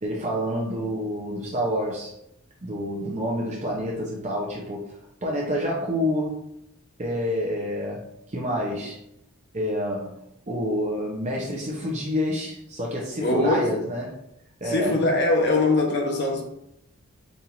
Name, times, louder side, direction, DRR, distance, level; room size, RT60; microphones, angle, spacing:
voice 1, 0.0-2.1 2.6-6.4 7.0-9.0 9.5-10.2 10.5-14.2 14.6-15.0, equal, 30° right, -3 dB, 0.7 m, -28 dB
voice 2, 13.2-13.8 14.6-16.4, left 2 dB, 50° left, 1 dB, 0.9 m, -22 dB
5.3 x 2.5 x 2.9 m, 0.79 s
head